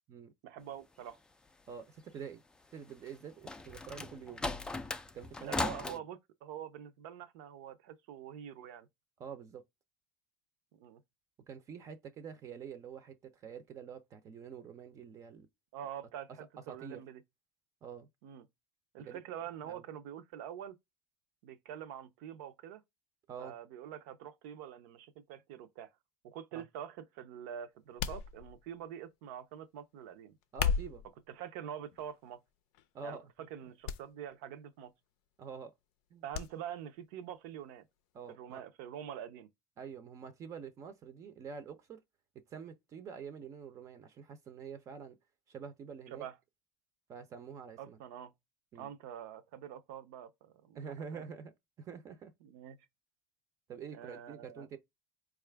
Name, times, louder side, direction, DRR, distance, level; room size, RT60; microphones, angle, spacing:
voice 1, 0.4-1.2 5.4-8.9 10.8-11.0 15.7-17.2 18.2-18.4 18.9-20.8 21.4-22.8 23.4-25.9 26.2-30.4 31.3-32.4 33.0-33.2 33.5-34.9 36.2-37.9 38.3-39.5 46.1-46.4 47.8-48.3 48.7-50.8 51.1-51.3 52.4-52.8 53.9-54.7, right 9 dB, 80° right, 0.6 m, -45 dB
voice 2, 1.7-2.4 2.7-4.5 5.1-6.0 9.2-9.6 11.5-15.5 16.7-17.0 17.8-18.1 19.0-19.2 19.6-19.8 23.3-23.5 26.5-26.6 30.5-31.0 32.9-33.5 35.4-35.7 36.1-36.2 38.1-38.6 39.8-42.0 42.5-45.2 45.5-46.2 47.1-48.0 48.7-48.9 50.7-51.5 51.8-52.3 53.7-54.8, right 6 dB, 40° right, 0.6 m, -47 dB
sound 1, 3.1-6.0, left 2 dB, 10° left, 0.3 m, -37 dB
sound 2, 28.0-28.8 30.4-31.1 31.9-32.3 32.7-32.9 33.8-34.0 34.3-34.4 36.3-36.5 36.9-37.0, left 7 dB, 75° left, 0.5 m, -34 dB
4.1 x 2.4 x 3.3 m
supercardioid pair, 120°, 9 cm